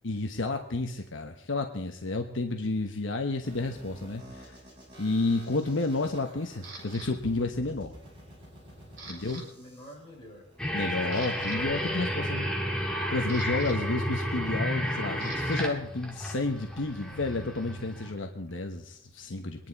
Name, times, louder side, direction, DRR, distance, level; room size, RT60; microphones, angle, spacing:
voice 1, 0.0-4.6 5.0-7.9 9.1-9.4 10.7-19.7, left 2 dB, 70° left, 5 dB, 1.1 m, -31 dB
sound 1, 3.4-11.4, equal, 30° right, 6.2 m, -51 dB
Camera, 6.6-7.1 7.7-8.0 8.4-9.4 9.7-9.9 10.5-10.6 11.0-11.6 12.8-15.7 16.0-18.5, right 2 dB, 50° right, 4.9 m, -47 dB
voice 2, 8.7-10.5, equal, 25° left, -3 dB, 5.5 m, -50 dB
sound 2, 10.6-18.1, equal, 5° left, 2.2 m, -32 dB
24.0 x 10.5 x 4.1 m, 0.77 s
head